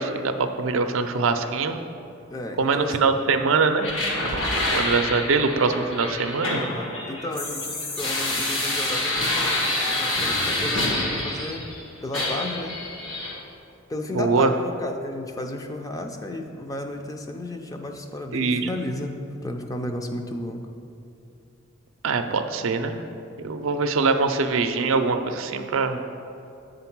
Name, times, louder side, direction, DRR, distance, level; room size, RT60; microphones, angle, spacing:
voice 1, 0.0-1.8 2.6-3.9 4.2-4.3 4.6-6.6 14.1-14.5 18.3-18.7 22.0-23.0 23.4-26.0, right 4 dB, 80° right, 7 dB, 0.5 m, -23 dB
voice 2, 2.3-3.0 6.5-12.8 13.9-20.6, left 1 dB, 20° left, 4 dB, 0.4 m, -33 dB
sound 1, 3.8-11.8 12.1-13.3, left 1 dB, 80° left, 1.5 m, -27 dB
7.8 x 3.9 x 5.9 m, 2.7 s
head